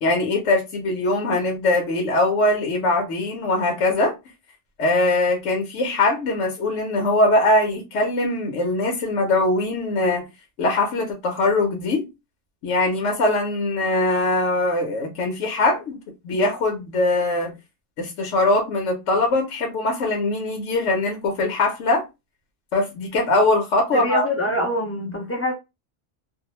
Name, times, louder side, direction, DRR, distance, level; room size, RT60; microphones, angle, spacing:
voice 1, 0.0-4.1 4.8-10.3 10.6-12.1 12.6-17.6 18.0-22.0 22.7-24.3, left 2 dB, 85° left, 1.1 m, -21 dB
voice 2, 23.9-25.5, left 1 dB, 25° left, 0.3 m, -25 dB
2.7 x 2.0 x 2.9 m
omnidirectional pair, 1.3 m